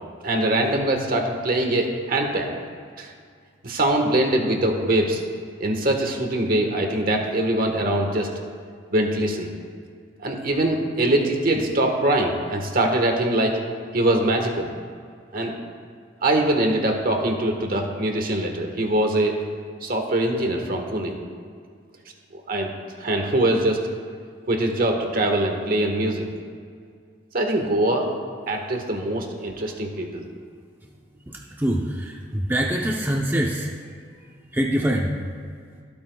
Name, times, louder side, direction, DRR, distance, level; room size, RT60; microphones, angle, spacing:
voice 1, 0.2-2.5 3.0-3.1 3.6-5.2 5.6-8.3 8.9-9.5 10.2-13.6 13.9-14.7 15.3-15.5 16.2-19.4 19.8-21.2 22.3-22.7 23.0-23.8 24.5-26.3 27.3-28.1 28.5-30.2, right 1 dB, 50° right, 3 dB, 1.4 m, -23 dB
voice 2, 31.3-33.7 34.5-35.1, right 1 dB, 10° right, -1 dB, 0.7 m, -24 dB
24.0 x 8.6 x 2.3 m, 2.1 s
head